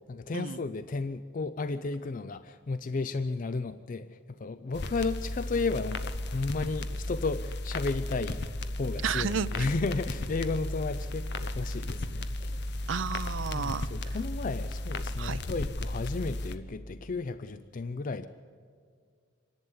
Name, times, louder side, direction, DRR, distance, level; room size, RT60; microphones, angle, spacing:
voice 1, 0.1-8.4 8.7-12.7 13.5-18.3, left 3 dB, 40° left, 12 dB, 0.4 m, -33 dB
sound 1, 4.7-16.6, left 1 dB, 55° left, 0.9 m, -35 dB
voice 2, 9.0-9.7 12.9-14.2 15.2-15.4, right 6 dB, 65° right, 14 dB, 0.6 m, -32 dB
26.0 x 11.0 x 9.5 m, 2.1 s
head